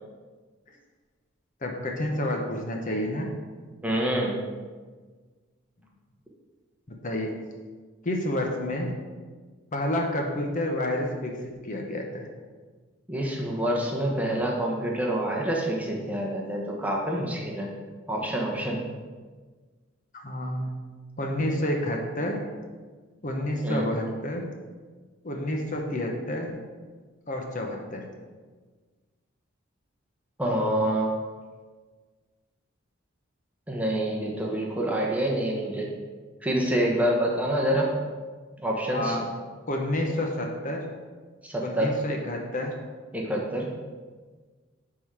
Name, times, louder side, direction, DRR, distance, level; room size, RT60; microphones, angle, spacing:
voice 1, 1.6-3.3 6.9-7.4 8.0-8.9 9.7-12.3 20.1-20.7 21.2-22.4 23.2-24.5 25.2-26.6 27.3-28.1 38.9-39.2 39.7-40.9 41.6-42.8, left 1 dB, 40° left, 1 dB, 0.9 m, -29 dB
voice 2, 3.8-4.5 13.1-17.7 18.1-18.9 23.6-23.9 30.4-31.1 33.7-35.9 36.4-38.0 38.6-39.2 41.4-42.0 43.1-43.7, right 1 dB, 5° right, -2 dB, 1.0 m, -27 dB
9.8 x 3.8 x 4.8 m, 1.4 s
head